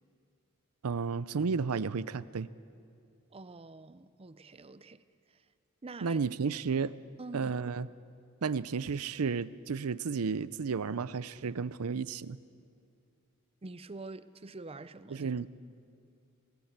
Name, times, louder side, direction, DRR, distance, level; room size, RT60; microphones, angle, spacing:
voice 1, 0.8-2.5 6.0-6.9 7.3-7.9 8.4-12.4 15.1-15.5, right 5 dB, 85° right, 0.6 m, -32 dB
voice 2, 3.3-5.4 5.8-6.2 7.2-7.5 13.6-15.3, right 3 dB, 25° right, 0.5 m, -46 dB
19.5 x 17.5 x 8.1 m
head